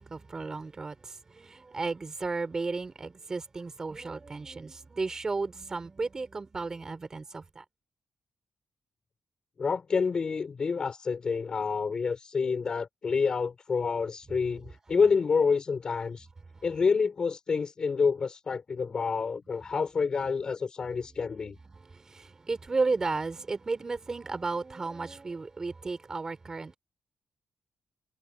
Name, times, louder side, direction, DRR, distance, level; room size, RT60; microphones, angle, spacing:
voice 1, 0.0-7.6 16.5-16.6 21.7-26.8, right 3 dB, 25° right, 5.4 m, -34 dB
voice 2, 9.6-16.3 16.6-21.6, left 5 dB, 40° left, 4.3 m, -28 dB
wide cardioid pair, 140°, 2 cm